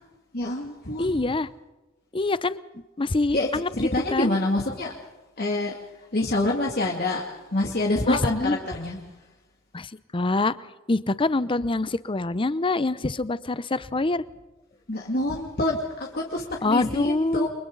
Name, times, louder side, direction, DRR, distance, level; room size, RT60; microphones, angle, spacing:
voice 1, 0.3-1.2 3.3-5.0 5.4-5.8 6.1-9.0 14.9-17.5, left 2 dB, 50° left, -1 dB, 2.5 m, -26 dB
voice 2, 1.0-1.5 2.1-2.6 3.0-3.7 4.1-4.3 8.1-8.6 9.7-10.6 10.9-14.2 16.6-17.5, left 2 dB, 25° left, 16 dB, 0.7 m, -25 dB
30.0 x 24.5 x 4.0 m, 1.1 s
head